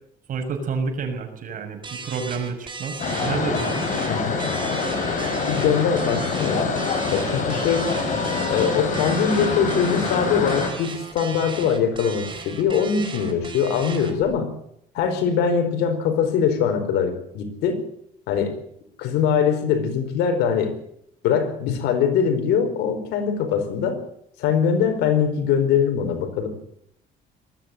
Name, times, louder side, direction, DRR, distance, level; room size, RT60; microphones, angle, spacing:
voice 1, 0.3-3.9, right 5 dB, 50° right, 6 dB, 6.4 m, -29 dB
sound 1, 1.8-14.2, right 4 dB, 30° right, 4.8 m, -36 dB
sound 2, 3.0-10.7, left 4 dB, 50° left, 7.1 m, -25 dB
voice 2, 4.1-4.4 5.5-6.7 7.1-7.9 8.5-14.5 14.9-17.8 18.3-18.6 19.0-20.7 21.2-24.0 24.4-26.5, left 7 dB, 85° left, 7 dB, 4.7 m, -22 dB
20.0 x 14.5 x 9.2 m, 0.72 s
cardioid pair, 110°, 17 cm